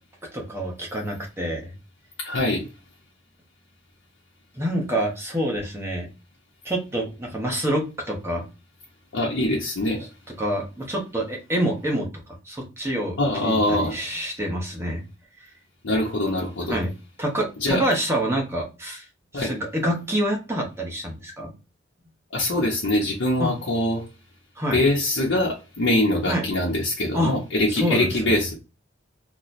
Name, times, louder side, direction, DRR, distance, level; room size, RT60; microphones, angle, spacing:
voice 1, 0.3-1.7 4.6-6.1 6.6-8.4 10.4-12.1 12.4-15.0 15.4-15.5 16.7-16.9 17.2-19.1 19.3-21.5 23.4-23.5 24.6-24.8 26.3-26.5 27.1-27.3 27.7-28.3, equal, 15° right, 0.9 m, -27 dB
voice 2, 2.2-2.6 9.1-10.1 13.2-14.0 15.8-16.8 17.6-17.8 19.3-19.5 22.3-24.0 24.7-28.5, left 1 dB, 80° left, 0.8 m, -23 dB
3.0 x 2.2 x 3.9 m
head